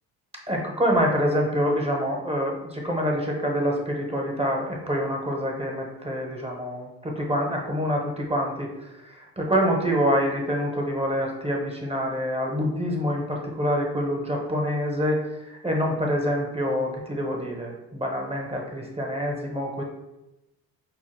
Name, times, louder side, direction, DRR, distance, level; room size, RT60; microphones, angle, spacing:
voice 1, 0.5-8.7 9.0-15.2 15.5-19.8, equal, 15° right, 0 dB, 0.9 m, -26 dB
4.5 x 2.1 x 3.2 m, 0.96 s
cardioid pair, 70°, 38 cm